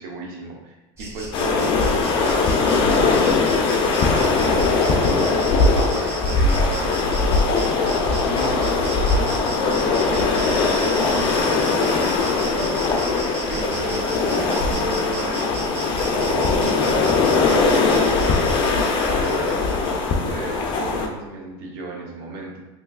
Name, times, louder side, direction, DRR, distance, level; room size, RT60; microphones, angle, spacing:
voice 1, 0.0-5.5 5.9-7.5 8.2-15.9 16.3-18.7 19.1-22.6, right 2 dB, 75° right, -2 dB, 0.9 m, -34 dB
Insect, 1.0-20.1, right 1 dB, 20° right, 0.7 m, -35 dB
breaking waves, 1.3-21.1, left 4 dB, 40° left, 0.4 m, -20 dB
sound 1, 11.1-17.4, left 1 dB, 20° left, 1.0 m, -34 dB
3.5 x 2.9 x 2.3 m, 1.1 s
supercardioid pair, 140°, 13 cm